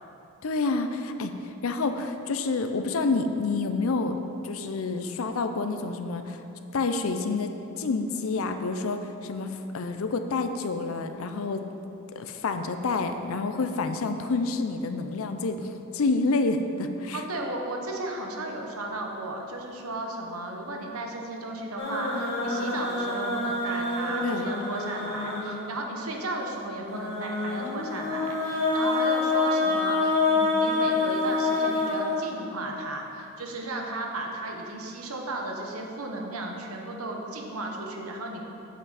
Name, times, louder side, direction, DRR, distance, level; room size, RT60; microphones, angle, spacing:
voice 1, 0.4-4.2 4.4-6.4 6.7-11.6 12.2-17.2 24.2-24.5, left 3 dB, 70° left, 7 dB, 0.5 m, -28 dB
voice 2, 17.1-38.4, right 2 dB, 75° right, 1 dB, 1.0 m, -35 dB
sound 1, 21.8-25.8 26.9-32.7, left 3 dB, 50° left, 1.6 m, -27 dB
7.6 x 7.4 x 4.1 m, 2.9 s
head